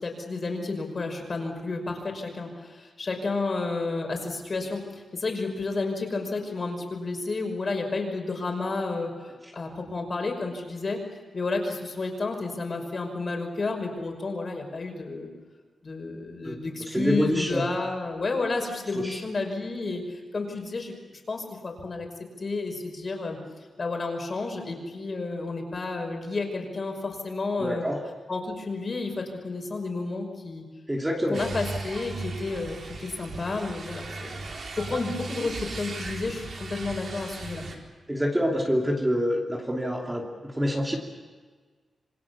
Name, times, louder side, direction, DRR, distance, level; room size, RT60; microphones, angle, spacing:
voice 1, 0.0-11.0 11.3-15.3 15.8-20.9 21.3-22.1 22.4-23.4 23.8-27.8 28.3-30.6 31.3-34.4 34.8-37.7, left 3 dB, 35° left, 3 dB, 5.6 m, -31 dB
voice 2, 16.9-17.6 19.0-19.2 27.6-28.0 30.9-31.4 38.1-41.0, equal, 10° right, -1 dB, 2.8 m, -26 dB
sound 1, 31.3-37.8, right 3 dB, 50° right, 4.3 m, -37 dB
27.5 x 25.0 x 7.2 m, 1.5 s
wide cardioid pair, 155°, 0 cm